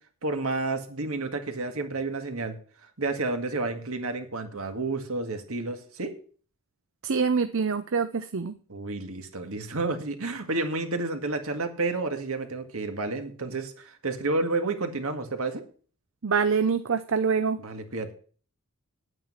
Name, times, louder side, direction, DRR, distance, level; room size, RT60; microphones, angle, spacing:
voice 1, 0.2-2.6 3.0-6.2 8.7-15.6 17.6-18.1, right 3 dB, 80° right, 6 dB, 1.9 m, -30 dB
voice 2, 7.0-8.6 16.2-17.6, right 5 dB, 65° right, 10 dB, 0.6 m, -25 dB
9.4 x 9.2 x 5.7 m, 0.42 s
head